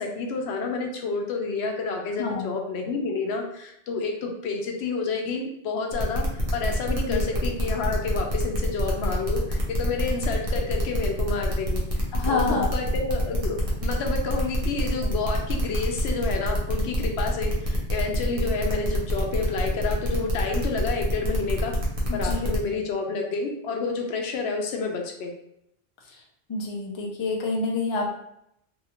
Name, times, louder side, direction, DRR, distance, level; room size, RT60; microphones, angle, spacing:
voice 1, 0.0-21.7 22.1-25.3, left 4 dB, 80° left, 2 dB, 0.8 m, -29 dB
voice 2, 2.2-2.5 7.1-7.5 12.1-12.7 22.1-22.6 26.0-26.2 26.5-28.1, left 3 dB, 40° left, -1 dB, 0.4 m, -28 dB
sound 1, 5.9-22.6, left 1 dB, 40° right, 0.7 m, -29 dB
2.7 x 2.4 x 2.8 m, 0.78 s
omnidirectional pair, 1.1 m